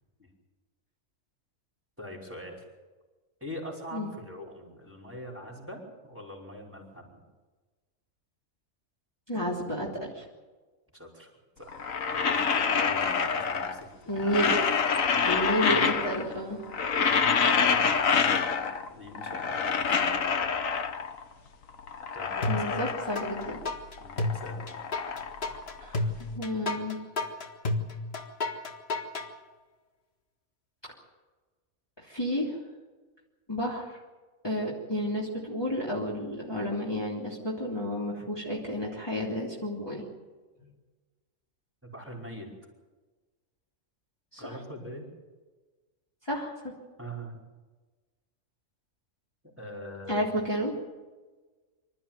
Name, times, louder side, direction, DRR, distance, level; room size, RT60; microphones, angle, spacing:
voice 1, 2.0-2.6 3.4-7.2 10.9-11.3 11.6-14.5 15.0-15.4 17.0-18.5 18.9-20.4 22.1-22.8 24.0-24.7 41.8-42.5 44.4-45.1 47.0-47.4 49.4-50.2, equal, 10° right, 0 dB, 5.2 m, -43 dB
voice 2, 9.3-10.2 14.1-14.6 15.3-16.6 22.5-23.6 25.8-27.0 32.0-32.6 33.5-34.0 34.4-40.0 44.3-44.6 46.2-46.7 50.1-50.8, equal, 15° left, -5 dB, 3.3 m, -31 dB
sound 1, 11.7-13.9 14.2-16.3 16.6-18.9 19.1-21.2 21.7-23.7 24.0-26.2, left 6 dB, 75° left, 1.6 m, -27 dB
sound 2, 22.4-23.3 23.6-29.3, left 2 dB, 50° left, 2.0 m, -31 dB
26.0 x 13.5 x 9.1 m, 1.3 s
omnidirectional pair, 1.4 m